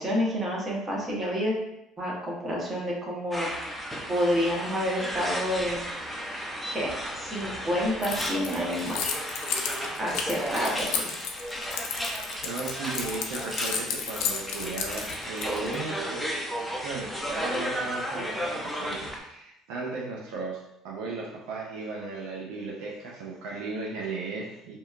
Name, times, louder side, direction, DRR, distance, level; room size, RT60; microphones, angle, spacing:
voice 1, 0.0-1.5 2.0-3.5 4.1-5.8 6.6-9.0 10.0-11.1, equal, 30° right, -3 dB, 0.9 m, -29 dB
sound 1, 3.3-19.2, equal, ahead, 0.5 m, -34 dB
Keys jangling, 8.0-15.8, left 7 dB, 75° left, 0.3 m, -33 dB
voice 2, 12.0-16.4 16.8-24.8, right 3 dB, 80° right, -2 dB, 0.4 m, -36 dB
2.7 x 2.2 x 2.4 m, 0.84 s
supercardioid pair, 80°, 0 cm